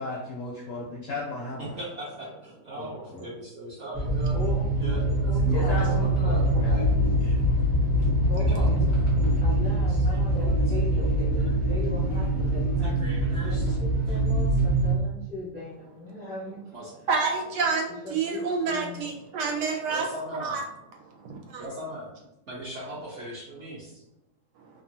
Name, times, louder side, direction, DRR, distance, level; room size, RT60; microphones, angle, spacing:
voice 1, 0.0-1.8 5.5-7.4, left 3 dB, 75° left, -4 dB, 0.7 m, -34 dB
voice 2, 1.6-2.3 2.7-4.3 4.8-6.9 8.3-8.7 9.9-10.8 12.8-13.8 14.1-14.2 16.7-16.9 19.9-20.6 21.6-22.1 22.5-24.0, right 1 dB, 60° right, -6 dB, 0.8 m, -39 dB
sound 1, 3.9-14.9, right 1 dB, 25° right, 0.7 m, -24 dB
voice 3, 4.3-6.5 8.3-13.0 13.3-16.6 18.0-19.0, left 1 dB, 15° left, -8 dB, 0.5 m, -39 dB
voice 4, 17.1-20.1 20.4-20.6 21.3-21.7, right 4 dB, 80° right, 1 dB, 1.2 m, -28 dB
2.9 x 2.4 x 2.7 m, 0.89 s
omnidirectional pair, 1.9 m